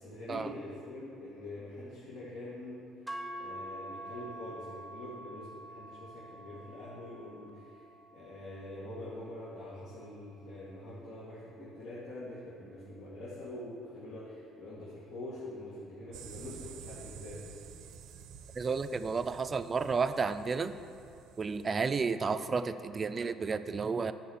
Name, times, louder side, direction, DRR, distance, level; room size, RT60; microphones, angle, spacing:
voice 1, 0.0-2.8 3.4-7.9 8.1-17.4, left 1 dB, 75° left, -9 dB, 2.1 m, -45 dB
sound 1, 3.1-11.3, right 1 dB, 5° right, 0.8 m, -47 dB
sound 2, 16.1-22.1, right 8 dB, 75° right, 0.6 m, -50 dB
voice 2, 18.6-20.7 21.4-24.1, right 5 dB, 30° right, 11 dB, 0.4 m, -32 dB
10.0 x 5.0 x 7.2 m, 2.6 s
cardioid pair, 110°, 0 cm